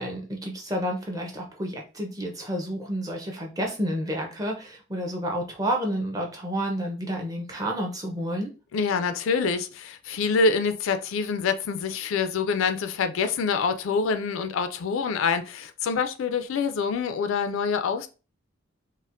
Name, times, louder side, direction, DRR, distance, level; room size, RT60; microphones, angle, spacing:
voice 1, 0.0-8.5, equal, 15° right, 0.5 m, -30 dB
voice 2, 8.7-18.1, left 5 dB, 65° left, 0.3 m, -26 dB
4.1 x 2.0 x 2.5 m
head